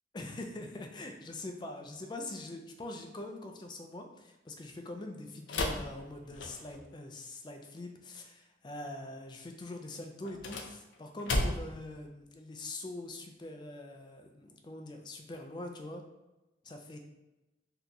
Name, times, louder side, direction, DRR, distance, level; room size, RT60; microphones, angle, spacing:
voice 1, 0.1-16.0 16.6-17.0, left 2 dB, 25° left, 4 dB, 0.3 m, -43 dB
sound 1, 5.5-6.9 10.2-11.9, left 2 dB, 90° left, 0.5 m, -34 dB
2.8 x 2.3 x 3.8 m, 1.0 s
head